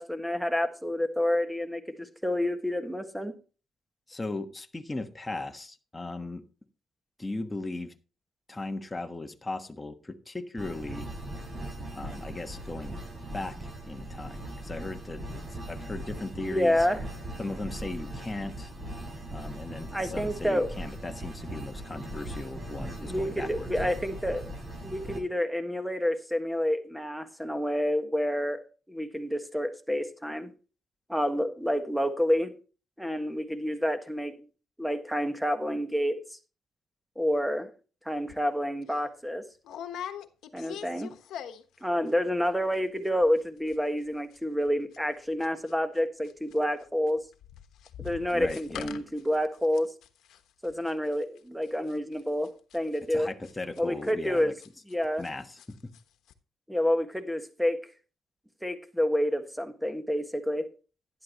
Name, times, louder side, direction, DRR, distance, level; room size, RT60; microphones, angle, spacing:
voice 1, 0.0-3.3 16.4-17.0 19.9-20.7 23.0-24.5 24.8-28.6 28.9-30.5 31.1-32.5 33.0-34.3 34.8-36.2 37.1-37.7 38.0-39.4 40.5-41.1 41.8-47.2 48.0-49.9 50.6-53.3 53.8-54.5 54.9-55.2 56.7-57.8 58.6-60.7, equal, ahead, 8 dB, 1.5 m, -28 dB
voice 2, 4.1-6.5 7.2-7.9 8.5-11.1 12.0-13.0 13.3-13.5 13.8-16.9 17.4-18.7 19.3-23.7 48.3-48.9 53.1-54.5 55.2-55.9, left 2 dB, 15° left, 5 dB, 1.3 m, -37 dB
sound 1, 10.6-25.2, right 1 dB, 25° right, 4.9 m, -39 dB
sound 2, 38.3-38.4 38.8-39.0 39.6-41.8 42.1-42.5 42.7-42.8 43.0-43.4 43.7-46.0 46.2-55.3 55.6-56.0 56.3-56.4, left 9 dB, 80° left, 1.1 m, -44 dB
11.5 x 11.0 x 3.0 m, 0.36 s
cardioid pair, 90°, 0 cm